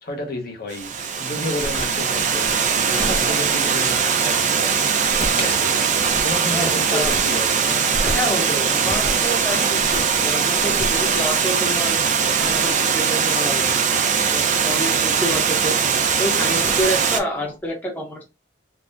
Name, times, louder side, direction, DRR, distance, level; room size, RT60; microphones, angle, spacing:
voice 1, 0.0-0.9 1.2-4.9 5.3-5.8 6.2-8.4, left 1 dB, 50° left, 0.7 m, -31 dB
Water, 0.7-17.2, right 6 dB, 40° right, 0.4 m, -20 dB
sound 1, 1.3-3.6 4.5-5.6 5.9-6.7 7.0-13.2 14.3-15.1 15.8-17.4, equal, 30° left, 1.1 m, -33 dB
voice 2, 6.5-7.1 8.1-12.0 12.4-13.8 14.3-15.8 16.2-18.3, equal, 10° left, 0.6 m, -28 dB
3.5 x 2.0 x 2.5 m
head